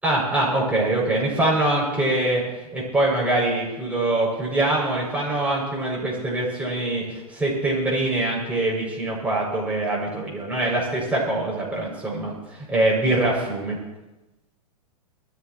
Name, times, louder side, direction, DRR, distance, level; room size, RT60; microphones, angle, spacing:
voice 1, 0.0-2.4 2.7-13.8, right 2 dB, 5° right, -4 dB, 6.8 m, -23 dB
22.0 x 14.0 x 3.1 m, 1.0 s
hypercardioid pair, 110°, 20 cm